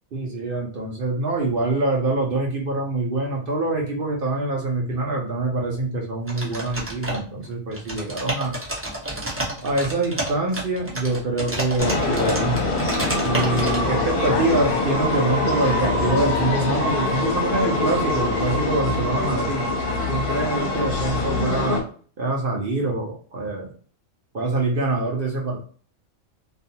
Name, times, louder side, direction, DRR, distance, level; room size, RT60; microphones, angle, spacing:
voice 1, 0.1-8.6 9.6-12.6 13.2-19.6 20.1-21.8 22.2-23.7 24.3-25.6, right 2 dB, 55° right, -1 dB, 0.7 m, -25 dB
sound 1, 6.3-7.4 7.7-13.8, right 1 dB, 15° right, 0.4 m, -30 dB
sound 2, 11.8-21.8, left 2 dB, 50° left, 0.7 m, -23 dB
2.5 x 2.3 x 2.7 m, 0.42 s
omnidirectional pair, 1.4 m